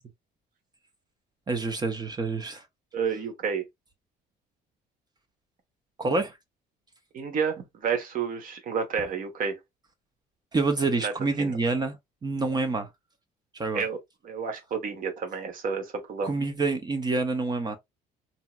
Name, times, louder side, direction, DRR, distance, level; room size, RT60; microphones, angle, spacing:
voice 1, 1.5-2.6 6.0-6.4 10.5-12.0 12.2-12.9 13.5-13.8 16.2-17.8, right 3 dB, 25° right, 0.5 m, -27 dB
voice 2, 2.9-3.6 7.1-9.6 11.0-11.1 11.4-11.6 13.7-14.0 14.2-16.3, right 6 dB, 55° right, 1.1 m, -30 dB
2.9 x 2.7 x 2.2 m
cardioid pair, 110°, 17 cm